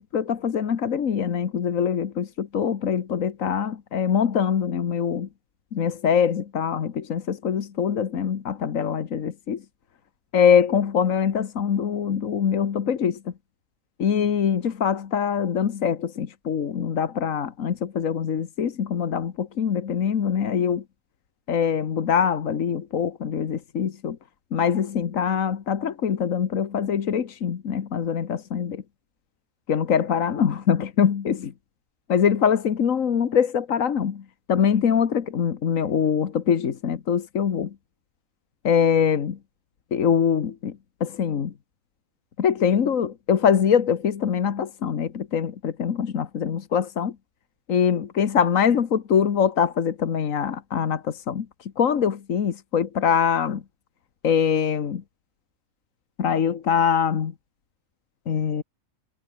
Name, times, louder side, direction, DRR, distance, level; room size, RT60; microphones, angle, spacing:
voice 1, 0.0-5.3 5.7-9.6 10.3-13.2 14.0-20.8 21.5-24.2 24.5-28.8 29.7-31.5 32.1-34.2 34.5-37.7 38.6-39.4 39.9-41.5 42.4-47.2 47.7-53.6 54.2-55.0 56.2-57.3 58.3-58.6, left 7 dB, 80° left, 1.7 m, -23 dB
omnidirectional pair, 1.4 m